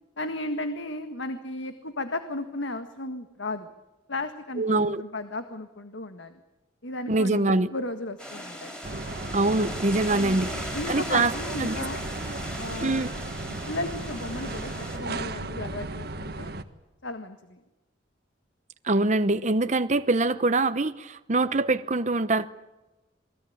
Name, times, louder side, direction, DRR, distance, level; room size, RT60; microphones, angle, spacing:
voice 1, 0.2-3.7 4.1-6.3 6.8-8.7 10.1-12.0 12.5-13.1 13.5-16.5 17.0-17.6, left 2 dB, 85° left, 1.7 m, -35 dB
voice 2, 4.6-5.0 7.1-7.7 9.3-11.3 11.6-11.8 12.8-13.1 18.8-22.5, right 2 dB, 40° right, 0.9 m, -24 dB
sound 1, 8.2-15.0, equal, 5° left, 6.0 m, -38 dB
sound 2, 8.8-16.6, right 2 dB, 55° right, 1.6 m, -35 dB
28.0 x 20.5 x 8.7 m
head